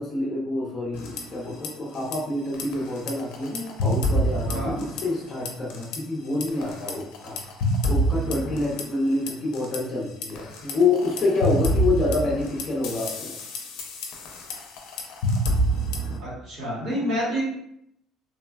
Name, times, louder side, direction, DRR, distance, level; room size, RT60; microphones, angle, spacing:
voice 1, 0.0-7.4 7.9-13.4, left 2 dB, 20° left, -5 dB, 0.6 m, -27 dB
sound 1, 0.9-1.7 2.0-2.2 2.5-5.2 5.5-6.0 6.4-9.8 10.2-16.2, equal, 85° left, 0.4 m, -27 dB
voice 2, 16.2-17.4, equal, 50° right, -7 dB, 1.2 m, -28 dB
3.2 x 2.1 x 2.2 m, 0.75 s
cardioid pair, 170°, 0 cm